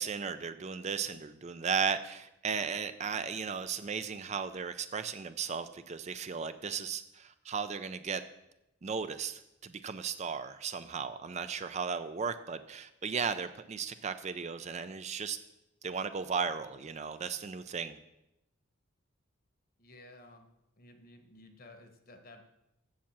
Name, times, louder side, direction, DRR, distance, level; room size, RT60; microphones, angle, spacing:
voice 1, 0.0-8.2 8.8-15.4 15.8-18.0, right 6 dB, 35° right, 11 dB, 0.4 m, -35 dB
voice 2, 19.8-20.5 20.8-22.4, left 2 dB, 45° left, 6 dB, 1.2 m, -54 dB
7.3 x 7.3 x 7.3 m, 0.88 s
head